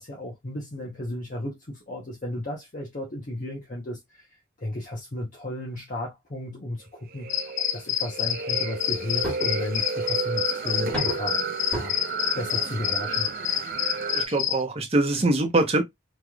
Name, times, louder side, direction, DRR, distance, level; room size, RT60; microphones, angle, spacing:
voice 1, 0.0-11.4 11.7-12.0 12.3-13.3, left 1 dB, 45° left, 0.8 m, -34 dB
sound 1, 7.1-14.3, right 5 dB, 50° right, 0.5 m, -33 dB
sound 2, 7.3-14.6, left 10 dB, 75° left, 0.6 m, -28 dB
sound 3, 9.2-9.6 10.9-11.4 11.7-11.9 12.8-12.9 13.3-13.4 13.7-13.8 14.4-14.5, equal, 5° left, 1.6 m, -31 dB
voice 2, 14.1-15.8, right 2 dB, 30° right, 0.9 m, -23 dB
3.4 x 3.0 x 2.3 m
head